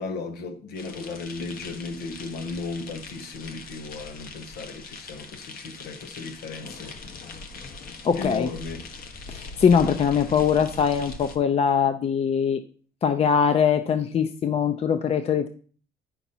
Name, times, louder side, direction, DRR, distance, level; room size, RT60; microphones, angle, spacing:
voice 1, 0.0-7.0 8.1-8.9, left 4 dB, 85° left, 1.2 m, -35 dB
sound 1, 0.7-11.4, left 4 dB, 60° left, 1.3 m, -41 dB
voice 2, 8.0-8.5 9.3-12.6 13.0-15.5, left 7 dB, 40° left, 0.6 m, -22 dB
9.0 x 5.9 x 4.2 m
cardioid pair, 110°, 17 cm